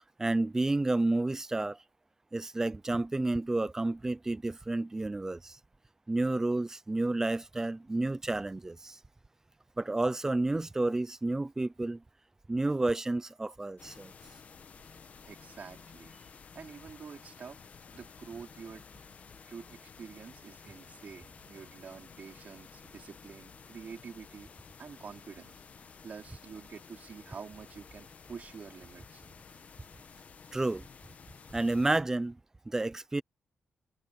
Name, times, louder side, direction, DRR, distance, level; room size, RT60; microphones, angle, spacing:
voice 1, 0.2-1.8 2.3-5.6 6.1-9.0 9.8-12.0 12.5-14.1 30.5-30.8 31.5-32.4 32.7-33.2, right 2 dB, 15° right, 0.5 m, -30 dB
sound 1, 13.8-32.0, left 6 dB, 40° left, 1.1 m, -53 dB
voice 2, 15.2-16.1 16.5-18.8 19.5-24.5 24.8-25.5 26.0-29.2, right 6 dB, 45° right, 3.3 m, -47 dB
wide cardioid pair, 175°, 4 cm